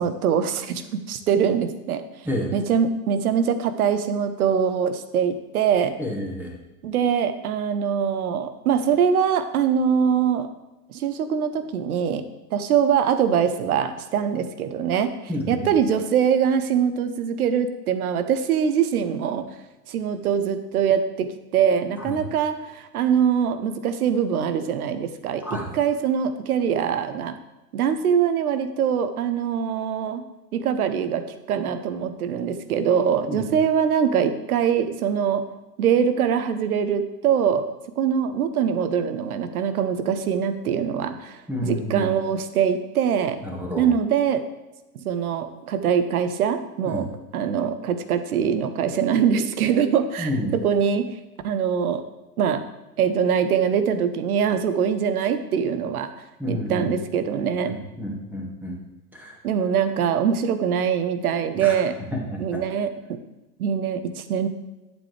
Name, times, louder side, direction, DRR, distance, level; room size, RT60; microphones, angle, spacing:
voice 1, 0.0-2.0 2.5-6.0 6.8-10.5 10.9-12.2 12.5-15.1 15.5-19.4 19.9-27.4 27.7-30.2 30.5-35.4 35.8-37.7 38.0-43.4 43.8-44.4 44.9-47.1 47.3-51.1 51.4-52.0 52.4-52.6 53.0-56.1 56.5-57.8 59.4-61.9 62.4-63.2 63.6-64.5, right 7 dB, 65° right, 10 dB, 1.0 m, -23 dB
voice 2, 6.0-6.5 15.3-15.6 22.0-22.2 25.4-25.7 33.3-33.5 41.5-42.1 43.4-43.9 46.9-47.0 50.2-50.5 56.4-56.9 57.6-58.8 59.1-59.4 61.5-61.7 62.1-62.6, left 1 dB, 5° right, -2 dB, 1.9 m, -29 dB
11.5 x 7.3 x 3.3 m, 1.0 s
figure-of-eight pair, 100°, 47 cm